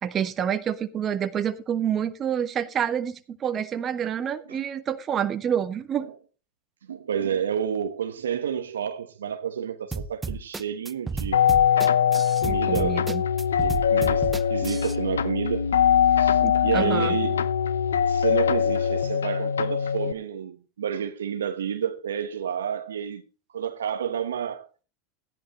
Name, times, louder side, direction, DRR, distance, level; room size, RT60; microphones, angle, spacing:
voice 1, 0.0-6.1 12.4-13.2 16.4-17.1, right 8 dB, 35° right, 1.3 m, -28 dB
voice 2, 6.9-11.4 12.4-13.1 13.6-15.7 16.1-17.4 17.9-23.2 23.5-24.7, right 8 dB, 85° right, 1.1 m, -30 dB
sound 1, 9.9-15.0, right 4 dB, 15° right, 0.8 m, -32 dB
sound 2, 11.3-20.1, left 8 dB, 90° left, 0.6 m, -22 dB
15.0 x 10.5 x 3.0 m
hypercardioid pair, 95°, 0 cm